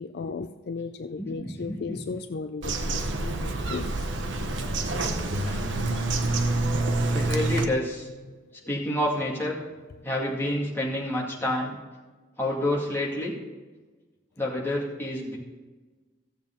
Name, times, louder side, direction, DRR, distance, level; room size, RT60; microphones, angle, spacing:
voice 1, 0.0-4.1 4.4-4.7 5.1-5.6, left 4 dB, 55° left, 8 dB, 0.4 m, -37 dB
voice 2, 1.2-2.0 7.1-8.1 8.7-9.6 10.0-11.8 12.4-13.4 14.4-15.4, left 1 dB, 10° left, -4 dB, 2.2 m, -28 dB
Bird vocalization bird call bird song, 2.6-7.7, right 2 dB, 75° right, 0.9 m, -27 dB
15.5 x 7.1 x 3.8 m, 1.3 s
head